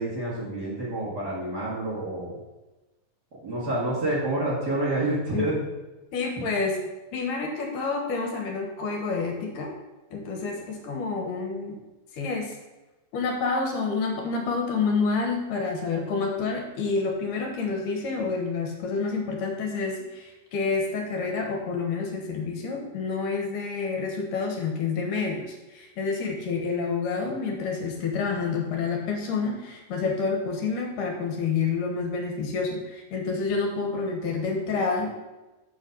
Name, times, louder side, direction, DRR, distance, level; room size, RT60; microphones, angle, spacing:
voice 1, 0.0-2.4 3.3-5.6, right 1 dB, 35° right, -8 dB, 2.1 m, -28 dB
voice 2, 6.1-6.8 7.1-9.7 10.1-11.8 12.1-12.5 13.1-35.1, left 4 dB, 75° left, 1 dB, 2.8 m, -28 dB
7.0 x 6.5 x 5.3 m, 1.1 s
omnidirectional pair, 3.8 m